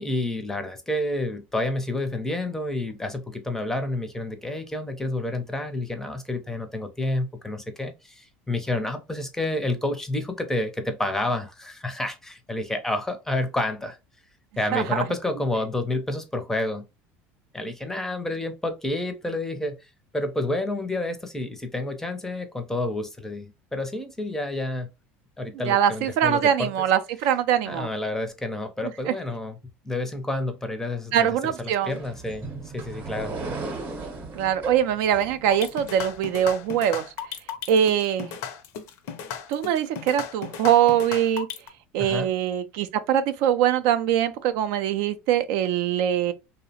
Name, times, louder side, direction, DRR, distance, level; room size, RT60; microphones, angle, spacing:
voice 1, 0.0-14.0 14.6-16.8 17.5-24.9 25.4-26.9 27.6-29.6 29.8-32.5 32.7-33.4 42.0-42.3, left 2 dB, 5° left, 0.5 m, -29 dB
voice 2, 14.7-15.0 25.7-27.9 29.1-29.2 31.1-31.9 34.4-37.0 37.7-38.3 39.5-41.5 41.9-46.3, right 10 dB, 70° right, 0.3 m, -22 dB
sound 1, 31.8-36.5, right 3 dB, 35° right, 0.8 m, -36 dB
sound 2, 35.5-41.7, left 8 dB, 65° left, 0.5 m, -35 dB
2.7 x 2.0 x 2.7 m
supercardioid pair, 120°, 6 cm